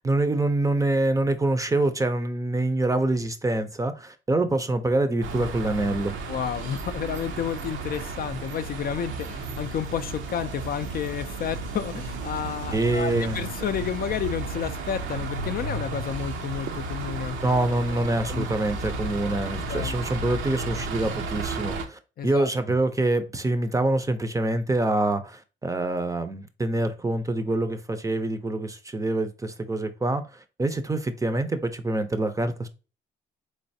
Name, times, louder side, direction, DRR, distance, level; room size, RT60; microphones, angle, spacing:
voice 1, 0.0-6.2 12.7-13.5 17.4-32.7, right 2 dB, 15° right, 0.5 m, -25 dB
sound 1, 5.2-21.9, right 3 dB, 80° right, 0.7 m, -33 dB
voice 2, 6.3-17.4 18.3-18.5 19.7-20.0 22.2-22.5, left 8 dB, 50° left, 0.4 m, -31 dB
3.9 x 3.2 x 2.7 m
cardioid pair, 90°, 20 cm